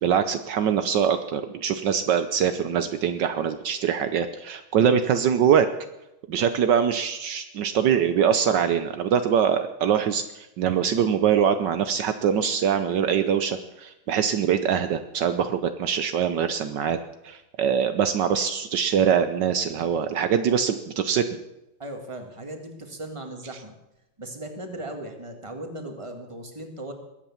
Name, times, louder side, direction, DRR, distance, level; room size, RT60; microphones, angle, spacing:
voice 1, 0.0-5.7 6.3-17.0 17.2-21.3, right 8 dB, 70° right, 9 dB, 1.4 m, -23 dB
voice 2, 21.8-23.7 24.2-26.9, right 1 dB, 15° right, 4 dB, 2.0 m, -37 dB
21.0 x 8.8 x 7.1 m, 0.91 s
omnidirectional pair, 2.1 m